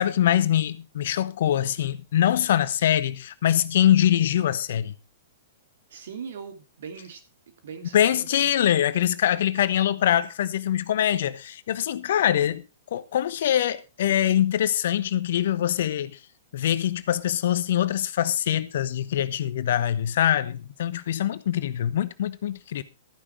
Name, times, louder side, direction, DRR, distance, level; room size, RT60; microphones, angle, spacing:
voice 1, 0.0-4.9 7.9-12.6 12.9-16.2 16.5-22.8, left 11 dB, 55° left, 1.0 m, -23 dB
voice 2, 5.9-7.2 7.6-8.3 12.3-12.5, right 6 dB, 60° right, 2.9 m, -40 dB
13.5 x 9.9 x 4.4 m
figure-of-eight pair, 110°, 0 cm